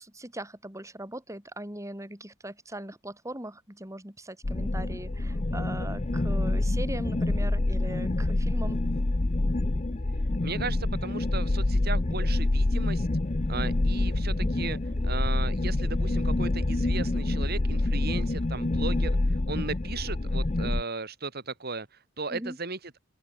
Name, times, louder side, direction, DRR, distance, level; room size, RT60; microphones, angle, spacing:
voice 1, 0.0-8.8 14.3-14.5 22.3-22.6, right 1 dB, 15° right, 4.8 m, -40 dB
sound 1, 4.4-20.8, left 2 dB, 35° left, 0.7 m, -27 dB
voice 2, 10.4-13.1 13.5-14.8 15.0-22.9, right 4 dB, 50° right, 2.3 m, -36 dB
open air
head